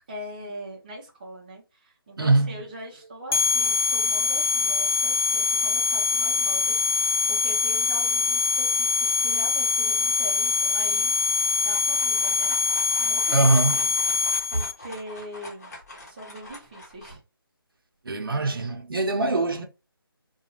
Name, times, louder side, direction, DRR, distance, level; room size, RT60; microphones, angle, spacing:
voice 1, 0.1-12.6 13.0-13.9 14.5-15.7 16.0-17.2, right 1 dB, 20° right, 0.6 m, -41 dB
voice 2, 2.2-2.6 13.3-13.8 18.0-19.7, right 2 dB, 65° right, 0.8 m, -22 dB
sound 1, 3.3-14.7, left 5 dB, 75° left, 0.5 m, -23 dB
sound 2, 11.3-17.2, left 1 dB, 40° left, 1.0 m, -44 dB
2.5 x 2.2 x 3.0 m
figure-of-eight pair, 170°, 13 cm